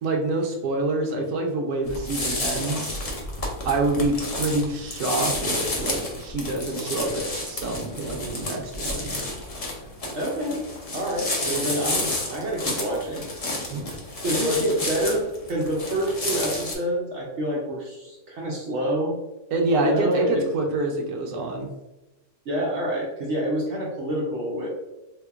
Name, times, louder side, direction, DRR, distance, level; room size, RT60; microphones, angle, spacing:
voice 1, 0.0-3.0 3.7-9.2 13.7-13.9 14.5-14.6 19.5-21.7, right 2 dB, 90° right, 1 dB, 1.1 m, -26 dB
sound 1, 1.8-16.7, left 2 dB, 60° left, 0.3 m, -30 dB
voice 2, 10.1-10.6 10.9-13.3 14.2-19.2 19.8-20.4 22.5-24.7, right 1 dB, 65° right, -3 dB, 0.8 m, -27 dB
3.8 x 2.8 x 2.3 m, 1.0 s
omnidirectional pair, 1.6 m